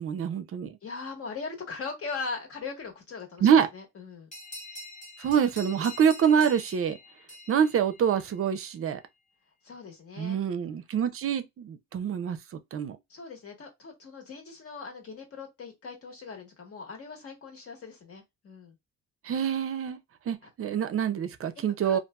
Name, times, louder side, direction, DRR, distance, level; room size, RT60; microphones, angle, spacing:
voice 1, 0.0-0.8 3.4-3.7 5.2-7.0 7.5-9.0 10.2-13.0 19.2-20.0 20.3-22.0, right 8 dB, 50° right, 0.5 m, -26 dB
voice 2, 0.8-4.3 9.6-10.4 13.1-18.8 21.8-22.0, left 4 dB, 50° left, 1.3 m, -40 dB
sound 1, 4.3-8.6, left 1 dB, 25° left, 0.9 m, -45 dB
2.8 x 2.5 x 2.3 m
cardioid pair, 90°, 30 cm